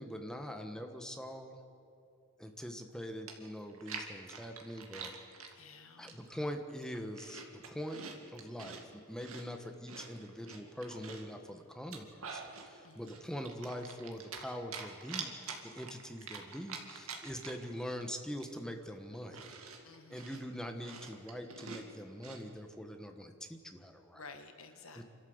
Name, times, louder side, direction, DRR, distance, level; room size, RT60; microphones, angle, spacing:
voice 1, 0.0-1.6 2.4-5.1 6.0-8.0 8.3-19.5 20.1-24.3 24.9-25.0, equal, 5° left, 5 dB, 1.3 m, -43 dB
Chewing mastication, 2.9-3.0 3.3-5.5 6.1-6.4 6.8-8.8 9.2-11.3 11.8-12.7 13.1-14.5 14.7-17.7 18.0-18.1 18.4-22.4, right 5 dB, 80° right, 2.3 m, -46 dB
voice 2, 5.6-6.2 12.8-13.2 19.8-20.3 24.1-25.0, left 4 dB, 70° left, 6 dB, 1.7 m, -53 dB
28.0 x 13.0 x 7.9 m, 2.6 s
head